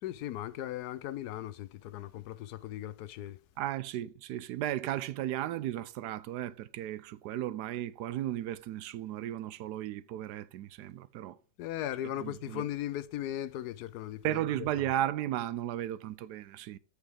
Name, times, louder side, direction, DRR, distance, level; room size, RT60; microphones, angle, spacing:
voice 1, 0.0-3.4 11.6-14.5, left 12 dB, 80° left, 1.1 m, -38 dB
voice 2, 3.6-11.4 12.2-12.6 14.2-16.8, right 12 dB, 80° right, 1.2 m, -35 dB
8.2 x 6.6 x 4.7 m
omnidirectional pair, 1.7 m